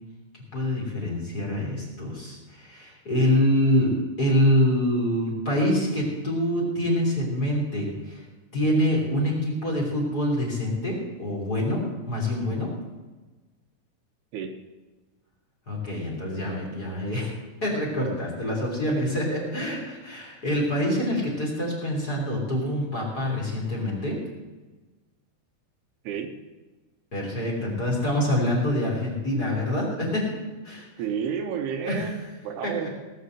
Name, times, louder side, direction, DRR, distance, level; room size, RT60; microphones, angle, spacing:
voice 1, 0.5-3.9 4.2-8.2 8.5-11.8 12.1-12.7 15.7-17.3 17.6-24.2 27.1-30.3 30.6-30.9 31.8-32.1 32.6-32.9, left 1 dB, 25° left, -3 dB, 3.5 m, -25 dB
voice 2, 31.0-32.9, right 7 dB, 80° right, 4 dB, 3.1 m, -31 dB
18.5 x 6.4 x 7.9 m, 1.2 s
omnidirectional pair, 4.7 m